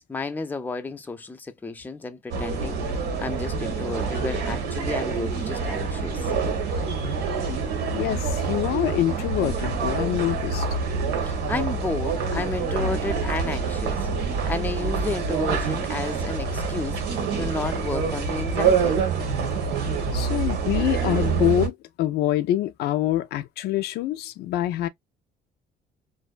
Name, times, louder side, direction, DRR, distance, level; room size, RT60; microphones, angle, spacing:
voice 1, 0.0-6.3 11.3-19.0, left 3 dB, 10° left, 0.4 m, -32 dB
sound 1, 2.3-21.7, right 5 dB, 80° right, 1.0 m, -26 dB
voice 2, 7.9-10.7 20.1-24.9, left 13 dB, 75° left, 0.4 m, -25 dB
2.6 x 2.2 x 2.3 m
cardioid pair, 110°, 17 cm